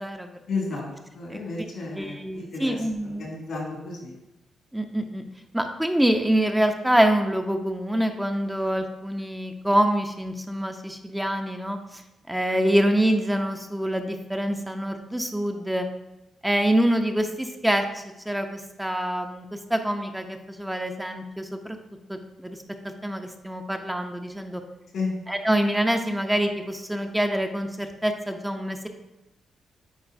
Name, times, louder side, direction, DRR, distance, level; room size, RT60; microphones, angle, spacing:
voice 1, 0.5-4.1 24.9-25.1, left 3 dB, 75° left, -3 dB, 2.3 m, -32 dB
voice 2, 1.9-3.3 4.7-5.2 5.5-12.0 12.3-15.9 16.4-21.8 22.1-22.6 22.8-24.6 25.3-28.9, right 1 dB, 10° right, 4 dB, 0.6 m, -25 dB
8.9 x 4.3 x 2.6 m, 0.93 s
supercardioid pair, 60°, 0 cm